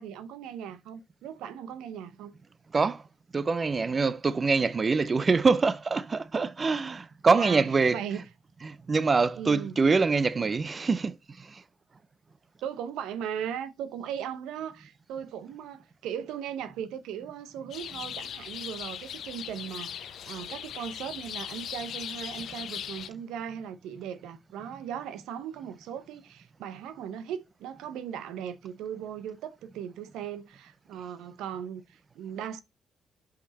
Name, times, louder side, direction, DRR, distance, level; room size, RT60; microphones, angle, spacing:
voice 1, 0.0-2.4 7.4-7.6 7.9-8.2 9.4-9.8 12.6-32.6, right 9 dB, 85° right, 0.7 m, -38 dB
voice 2, 3.3-8.2 8.6-11.6, right 4 dB, 40° right, 0.4 m, -25 dB
sound 1, 17.7-23.1, left 9 dB, 70° left, 0.5 m, -39 dB
5.4 x 5.1 x 4.2 m
supercardioid pair, 60°, 0 cm